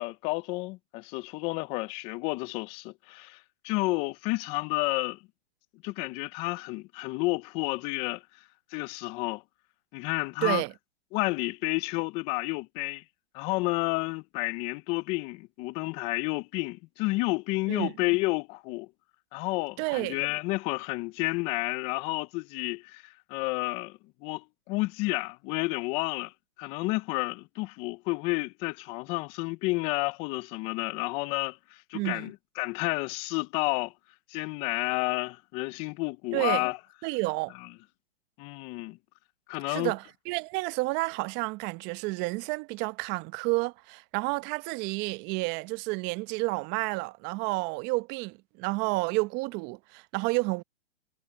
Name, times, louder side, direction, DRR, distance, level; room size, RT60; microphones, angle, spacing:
voice 1, 0.0-5.2 5.8-8.2 8.7-9.4 9.9-10.6 11.1-13.0 13.3-18.9 19.3-26.3 26.6-33.9 34.3-36.8 37.6-37.7 38.4-39.0 39.5-39.9, left 24 dB, 20° left, 0.4 m, -31 dB
voice 2, 10.4-10.7 17.7-17.9 19.8-20.2 31.9-32.3 36.3-36.6 37.0-37.5 39.7-50.6, right 25 dB, 30° right, 1.0 m, -30 dB
hypercardioid pair, 130°, 35 cm